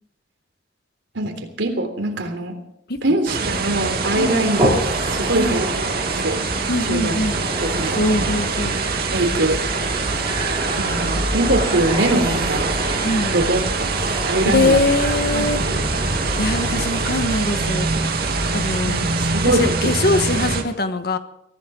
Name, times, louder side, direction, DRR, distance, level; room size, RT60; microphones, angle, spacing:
voice 1, 1.1-2.5 3.0-4.7 5.1-5.7 6.2-6.4 6.8-7.1 7.6-8.3 9.1-9.6 10.8-12.7 13.3-14.0 14.2-14.8 15.3-15.8 18.8-19.9, right 1 dB, 80° right, 5 dB, 3.5 m, -22 dB
sound 1, 3.3-20.6, right 3 dB, 55° right, 2.6 m, -24 dB
sound 2, 3.4-17.3, right 1 dB, 25° right, 6.7 m, -28 dB
voice 2, 6.7-7.4 7.9-8.8 13.0-13.3 14.5-15.6 16.4-17.9 18.5-19.1 19.5-21.2, left 2 dB, 60° left, 9 dB, 1.4 m, -22 dB
23.0 x 15.0 x 3.8 m, 0.80 s
head